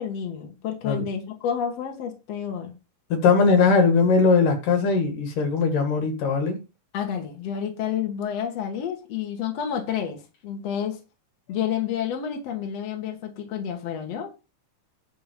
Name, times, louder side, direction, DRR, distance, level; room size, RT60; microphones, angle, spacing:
voice 1, 0.0-2.7 6.9-11.0 11.5-14.3, left 8 dB, 55° left, 2.6 m, -30 dB
voice 2, 3.1-6.6, left 4 dB, 75° left, 3.6 m, -20 dB
11.5 x 3.8 x 7.5 m
omnidirectional pair, 3.8 m